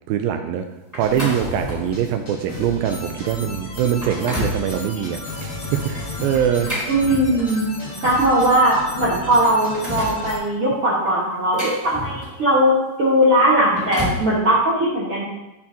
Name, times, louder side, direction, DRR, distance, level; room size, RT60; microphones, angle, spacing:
voice 1, 0.1-0.7 0.9-6.7, right 9 dB, 90° right, 6 dB, 2.0 m, -23 dB
sound 1, 0.9-2.0 2.5-2.7 3.3-3.4 3.8-4.6 6.3-7.7 8.7-8.8 9.1-10.2 11.1-12.5 13.5-14.3, left 1 dB, 5° right, 1.6 m, -30 dB
sound 2, 1.0-10.3, left 2 dB, 40° left, 1.4 m, -35 dB
sound 3, 2.9-10.4, left 2 dB, 70° left, 1.1 m, -38 dB
voice 2, 6.9-7.6 8.0-15.2, right 1 dB, 70° right, -8 dB, 1.3 m, -19 dB
10.5 x 5.9 x 2.8 m, 1.0 s
omnidirectional pair, 4.7 m